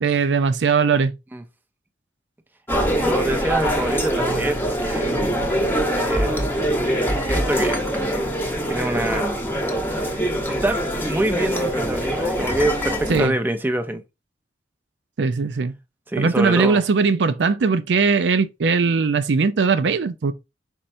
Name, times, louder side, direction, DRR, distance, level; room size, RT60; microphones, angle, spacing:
voice 1, 0.0-1.1 13.1-13.3 15.2-15.7 16.2-20.3, right 5 dB, 75° right, 0.5 m, -19 dB
sound 1, 2.7-13.3, equal, 10° left, 0.9 m, -23 dB
voice 2, 2.8-5.2 5.9-7.8 8.6-9.4 9.9-10.8 11.0-14.0 16.1-16.8, right 1 dB, 10° right, 0.5 m, -26 dB
4.5 x 4.2 x 2.6 m
head